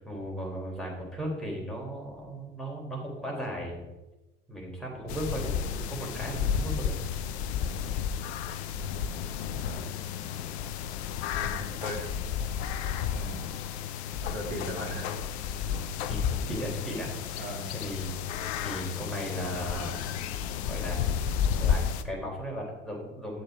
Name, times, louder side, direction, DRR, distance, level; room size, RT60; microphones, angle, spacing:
voice 1, 0.0-3.8 4.5-7.0 16.1-16.2 16.5-20.0 20.7-21.2 21.6-23.4, equal, ahead, -3 dB, 3.8 m, -36 dB
sound 1, 5.1-22.0, left 8 dB, 60° left, 0.7 m, -32 dB
voice 2, 8.7-9.1 9.5-9.8 11.0-11.1 11.4-12.0 13.1-13.5 14.2-15.1 17.4-17.7, right 1 dB, 80° right, -1 dB, 2.8 m, -39 dB
11.0 x 6.5 x 4.9 m, 1.0 s
figure-of-eight pair, 70°, 37 cm